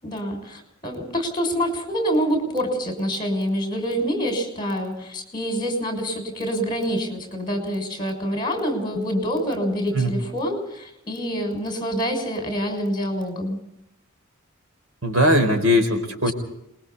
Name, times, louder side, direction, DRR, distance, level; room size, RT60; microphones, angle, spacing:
voice 1, 0.0-13.6, equal, 20° left, 3 dB, 6.4 m, -26 dB
voice 2, 15.0-16.3, left 1 dB, 90° right, 6 dB, 4.5 m, -19 dB
28.0 x 22.0 x 4.1 m, 0.81 s
head